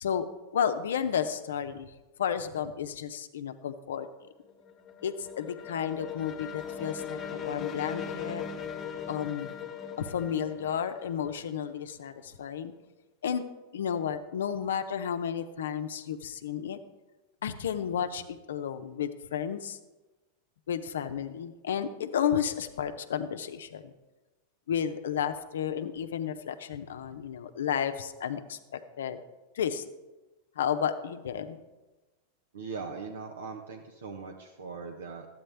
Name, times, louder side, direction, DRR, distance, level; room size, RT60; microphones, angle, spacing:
voice 1, 0.5-1.9 2.2-4.1 5.0-8.4 9.1-9.5 10.0-12.7 13.2-13.5 13.7-16.8 17.4-19.8 20.7-23.9 24.7-28.6 29.0-29.2 29.5-29.8 30.6-31.6, left 8 dB, 80° left, 9 dB, 0.6 m, -32 dB
sound 1, 4.3-12.0, left 7 dB, 30° left, 1.0 m, -39 dB
voice 2, 32.5-35.3, right 4 dB, 80° right, 3 dB, 0.8 m, -40 dB
12.5 x 8.6 x 3.4 m, 1.1 s
hypercardioid pair, 100°, 0 cm